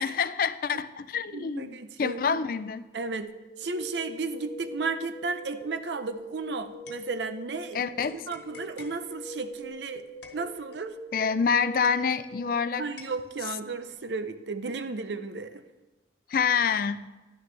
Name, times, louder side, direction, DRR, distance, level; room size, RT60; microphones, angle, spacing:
voice 1, 0.0-2.8 7.7-8.2 11.1-12.8 16.3-17.1, left 6 dB, 50° left, 14 dB, 0.4 m, -27 dB
voice 2, 1.3-2.4 2.9-3.3 3.6-10.0 10.3-11.0 12.8-15.6, right 4 dB, 75° right, 10 dB, 0.6 m, -34 dB
sound 1, 3.2-12.8, equal, 35° left, 1.9 m, -43 dB
sound 2, 6.1-7.6 8.0-12.6 13.0-14.1, left 4 dB, 75° left, 1.3 m, -51 dB
11.5 x 9.7 x 3.3 m, 1.2 s
head